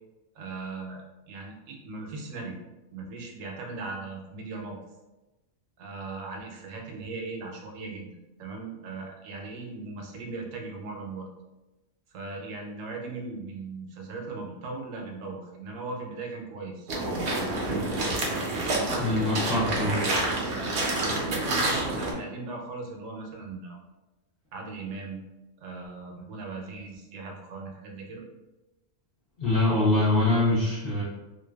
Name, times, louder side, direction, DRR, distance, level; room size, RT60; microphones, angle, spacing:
voice 1, 0.3-2.6 2.9-4.8 5.8-8.1 8.4-11.3 12.1-16.9 17.3-18.1 19.3-20.0 21.0-23.8 24.5-25.2 25.6-28.2, right 3 dB, 85° right, 0 dB, 1.0 m, -38 dB
sound 1, 16.9-22.1, right 2 dB, 65° right, 0.7 m, -28 dB
voice 2, 19.0-20.0 29.4-31.0, left 2 dB, 55° left, -8 dB, 0.7 m, -24 dB
2.5 x 2.2 x 2.2 m, 1.0 s
omnidirectional pair, 1.3 m